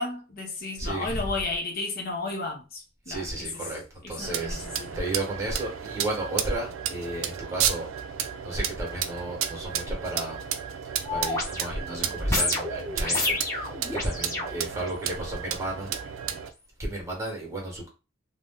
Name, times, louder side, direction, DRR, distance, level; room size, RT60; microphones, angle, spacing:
voice 1, 0.0-3.6 4.0-5.0, left 3 dB, 45° left, 0.6 m, -33 dB
voice 2, 0.8-1.2 3.1-4.6 4.9-7.9 8.4-10.4 11.1-15.9 16.8-17.9, right 2 dB, 15° right, 1.0 m, -33 dB
sound 1, 4.2-16.5, right 9 dB, 80° right, 0.4 m, -33 dB
sound 2, 11.0-15.2 15.8-15.9, left 2 dB, 15° left, 0.8 m, -30 dB
2.5 x 2.1 x 3.4 m
head